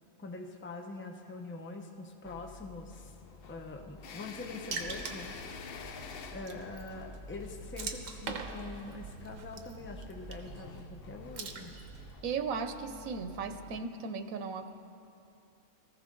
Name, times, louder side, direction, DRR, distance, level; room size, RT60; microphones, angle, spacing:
voice 1, 0.2-11.7, left 3 dB, 10° left, 3 dB, 0.6 m, -44 dB
sound 1, 2.2-13.8, left 5 dB, 55° left, 0.8 m, -49 dB
Water / Splash splatter, 4.7-12.1, right 5 dB, 70° right, 1.3 m, -44 dB
voice 2, 12.2-14.7, right 5 dB, 85° right, 9 dB, 1.2 m, -36 dB
19.0 x 14.0 x 3.8 m, 2.7 s
omnidirectional pair, 1.4 m